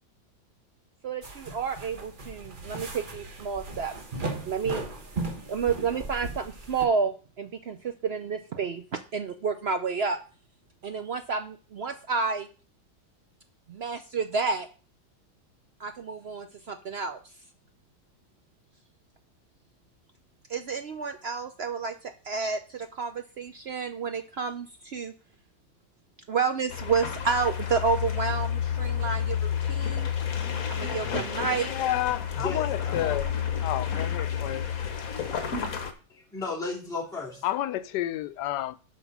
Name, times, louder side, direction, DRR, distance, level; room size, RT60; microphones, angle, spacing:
voice 1, 1.0-3.9 4.4-4.8 5.5-10.2 10.8-12.5 13.7-14.7 15.8-17.2 20.5-25.1 26.3-30.1 30.6-31.7, right 5 dB, 70° right, 0.6 m, -30 dB
sound 1, 1.2-6.9, right 3 dB, 35° right, 1.2 m, -37 dB
sound 2, 26.7-35.9, left 8 dB, 60° left, 1.5 m, -30 dB
voice 2, 31.6-33.3 33.6-34.6 37.4-38.8, left 13 dB, 85° left, 1.2 m, -30 dB
voice 3, 32.3-33.2 33.9-34.3 36.1-37.6, left 3 dB, ahead, 2.4 m, -36 dB
7.5 x 5.1 x 6.0 m
omnidirectional pair, 1.8 m